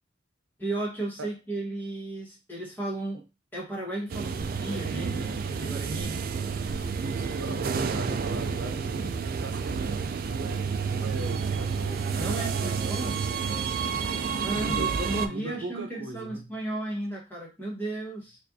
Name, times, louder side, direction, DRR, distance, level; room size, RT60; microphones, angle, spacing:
voice 1, 0.6-3.2 3.5-6.2 12.1-13.2 14.4-18.4, right 2 dB, 10° left, 1.3 m, -34 dB
sound 1, 4.1-15.3, right 5 dB, 50° right, 0.3 m, -30 dB
voice 2, 7.0-13.2 13.7-14.1 14.6-15.0 15.3-16.5, right 2 dB, 80° right, 0.7 m, -39 dB
4.2 x 2.4 x 2.6 m
head